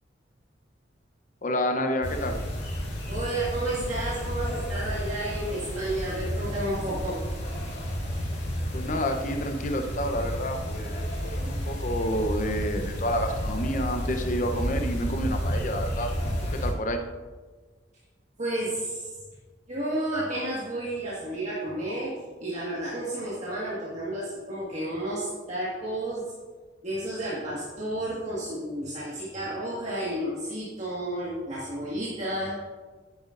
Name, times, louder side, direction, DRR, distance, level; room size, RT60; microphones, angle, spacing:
voice 1, 1.4-2.4 8.7-17.0, equal, 40° left, 5 dB, 0.7 m, -29 dB
sound 1, 2.0-16.7, equal, 60° left, 2.2 m, -31 dB
voice 2, 3.1-7.3 18.4-19.1 19.7-26.3 26.8-32.6, right 1 dB, 35° right, -8 dB, 1.7 m, -31 dB
10.5 x 9.4 x 2.5 m, 1.4 s
head